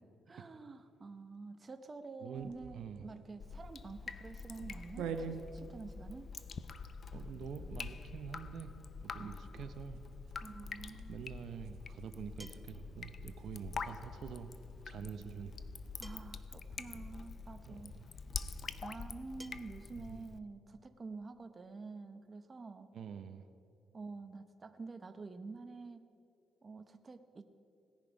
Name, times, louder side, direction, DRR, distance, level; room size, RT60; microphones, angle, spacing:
voice 1, 0.0-6.3 9.2-9.5 10.4-11.3 15.0-15.5 16.0-17.9 18.8-22.9 23.9-26.1 26.6-27.4, right 3 dB, 30° right, 8 dB, 0.8 m, -48 dB
voice 2, 2.2-3.1 7.1-8.7 9.0-10.0 11.1-14.5 14.8-15.5 17.7-18.1 20.0-20.3 22.9-23.5, right 7 dB, 65° right, 9 dB, 0.8 m, -46 dB
sound 1, 2.3-17.3, right 6 dB, 90° right, 0.9 m, -51 dB
Drip, 3.4-20.4, left 5 dB, 45° left, 0.6 m, -46 dB
sound 2, 12.4-12.9 14.4-14.5 16.0-16.5 17.7-17.8 19.4-19.5, equal, 5° left, 0.8 m, -54 dB
18.0 x 10.5 x 5.3 m, 2.6 s
cardioid pair, 90°, 0 cm